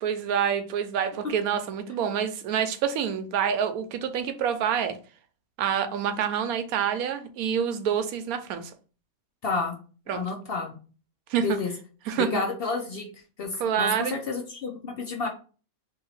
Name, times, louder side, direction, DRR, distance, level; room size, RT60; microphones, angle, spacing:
voice 1, 0.0-5.0 5.6-8.7 10.1-10.2 11.3-11.6 12.1-12.4 13.6-14.2, right 8 dB, 90° right, 1.1 m, -27 dB
voice 2, 9.4-9.7 10.1-10.8 11.4-11.7 12.2-13.1 13.4-15.3, left 4 dB, 55° left, 0.7 m, -30 dB
2.8 x 2.8 x 3.9 m
omnidirectional pair, 1.5 m